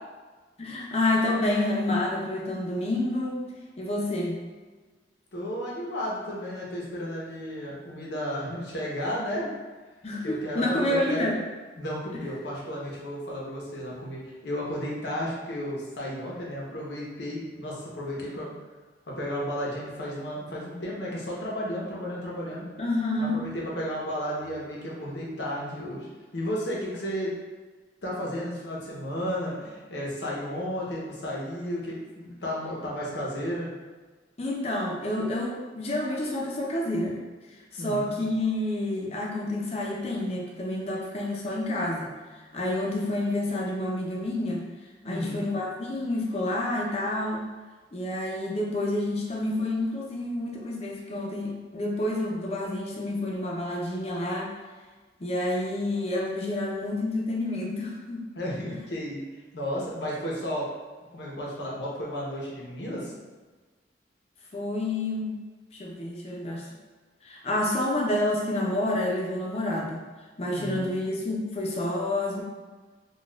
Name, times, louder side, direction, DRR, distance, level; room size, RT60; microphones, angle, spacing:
voice 1, 0.6-3.4 3.8-4.4 10.0-11.4 22.8-23.4 34.4-37.2 37.7-42.1 42.5-44.6 45.0-47.5 47.9-54.6 55.2-58.2 64.5-65.4 65.7-66.7 67.2-70.0 70.4-72.4, left 1 dB, 35° left, -2 dB, 0.5 m, -29 dB
voice 2, 5.3-9.5 10.2-11.4 11.8-18.5 19.1-22.7 23.2-26.1 26.3-27.3 28.0-33.7 37.8-38.2 45.0-45.5 58.3-59.2 59.5-60.7 61.1-63.1 70.5-70.9, equal, 70° left, -4 dB, 0.8 m, -33 dB
4.1 x 2.3 x 2.3 m, 1.3 s
head